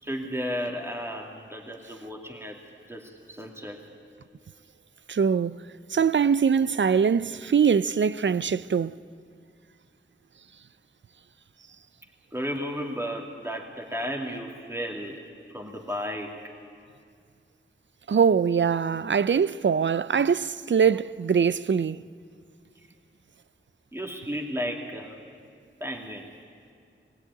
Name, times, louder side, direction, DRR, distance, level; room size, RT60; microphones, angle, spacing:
voice 1, 0.0-2.6 2.9-3.8 6.7-6.8 12.3-15.2 15.5-16.4 23.9-25.2 25.8-26.3, equal, 10° right, 2.6 m, -33 dB
voice 2, 5.1-9.0 18.1-22.0, right 6 dB, 65° right, 0.5 m, -23 dB
21.0 x 16.5 x 9.7 m
cardioid pair, 45°, 21 cm